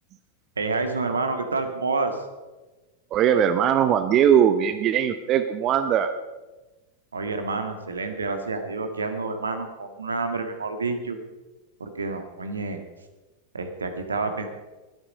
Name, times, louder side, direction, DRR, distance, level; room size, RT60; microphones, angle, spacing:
voice 1, 0.6-2.2 7.1-11.2 11.8-12.8 13.5-14.5, right 3 dB, 75° right, 7 dB, 1.8 m, -28 dB
voice 2, 3.1-6.1, right 9 dB, 35° right, 10 dB, 0.8 m, -20 dB
22.0 x 8.9 x 5.4 m, 1.2 s
figure-of-eight pair, 90°, 0 cm